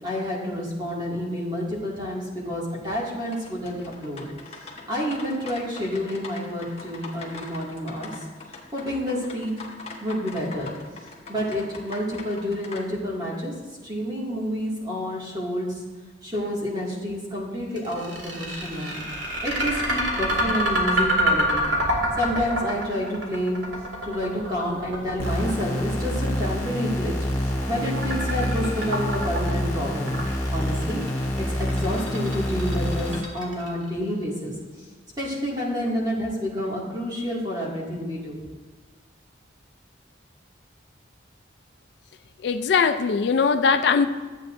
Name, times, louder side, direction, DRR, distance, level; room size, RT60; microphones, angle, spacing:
voice 1, 0.0-4.2 4.9-8.1 8.5-9.5 10.0-10.7 11.3-13.5 13.8-15.8 16.2-19.0 19.4-21.7 22.2-23.7 24.0-27.1 27.7-30.1 30.5-34.9 35.2-38.4, equal, 20° right, -5 dB, 2.1 m, -29 dB
sound 1, 3.3-12.8, left 3 dB, 30° left, 1.1 m, -42 dB
sound 2, 17.8-33.9, equal, 75° right, 2.1 m, -27 dB
sound 3, 25.2-33.2, equal, 15° left, 0.9 m, -27 dB
voice 2, 42.4-44.1, left 5 dB, 60° left, 9 dB, 0.4 m, -20 dB
12.5 x 8.2 x 2.6 m, 1.4 s
head